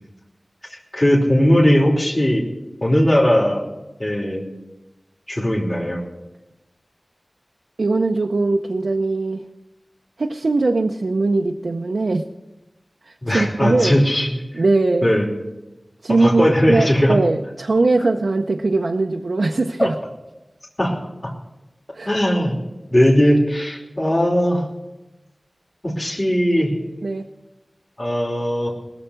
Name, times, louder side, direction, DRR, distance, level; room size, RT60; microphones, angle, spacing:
voice 1, 0.7-2.4 2.8-3.7 4.0-4.4 5.3-6.0 13.2-14.3 15.0-15.3 16.2-17.2 19.8-19.9 20.8-21.3 22.0-22.5 22.9-24.7 25.8-26.7 28.0-28.7, equal, 35° left, -2 dB, 3.1 m, -18 dB
voice 2, 7.8-9.5 10.2-12.3 13.0-14.0 14.5-15.1 16.0-20.0 21.9-22.1 27.0-27.3, right 3 dB, 80° right, 4 dB, 0.6 m, -20 dB
20.0 x 7.1 x 6.4 m, 1.0 s
wide cardioid pair, 40°, 0 cm